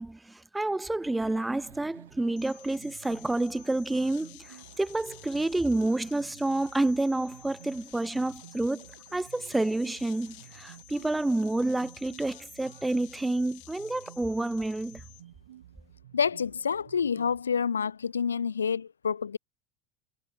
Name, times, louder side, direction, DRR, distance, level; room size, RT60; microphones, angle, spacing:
voice 1, 0.0-8.9 9.1-15.0, right 2 dB, 10° right, 0.5 m, -29 dB
sound 1, 1.0-17.4, right 12 dB, 70° right, 1.7 m, -52 dB
sound 2, 2.4-15.2, left 35 dB, 55° left, 2.0 m, -53 dB
voice 2, 16.1-19.4, left 6 dB, 80° left, 0.4 m, -28 dB
figure-of-eight pair, 80°, 0 cm